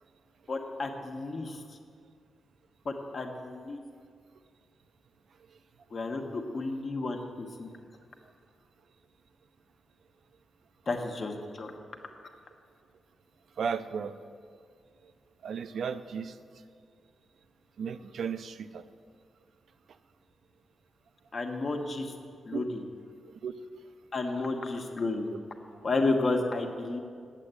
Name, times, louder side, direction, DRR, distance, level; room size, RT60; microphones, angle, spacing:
voice 1, 0.5-1.6 2.8-3.8 5.9-7.7 10.9-11.7 21.3-22.1 22.4-22.8 24.1-25.3 25.8-27.0, left 3 dB, 45° left, 3 dB, 1.3 m, -32 dB
voice 2, 13.6-14.1 15.4-16.4 17.8-18.9 22.5-22.6 23.4-23.5, right 6 dB, 70° right, 11 dB, 0.5 m, -34 dB
8.9 x 8.2 x 8.2 m, 2.2 s
cardioid pair, 100°, 0 cm